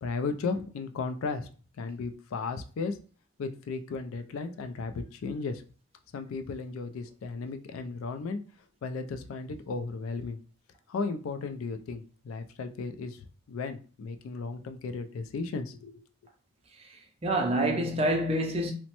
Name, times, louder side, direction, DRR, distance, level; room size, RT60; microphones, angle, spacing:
voice 1, 0.0-1.5 1.8-3.0 3.4-5.6 6.1-8.4 8.8-10.4 10.9-16.0, left 4 dB, 75° left, 0.3 m, -35 dB
voice 2, 16.9-18.7, right 1 dB, 30° right, 0.4 m, -27 dB
2.9 x 2.1 x 2.9 m
head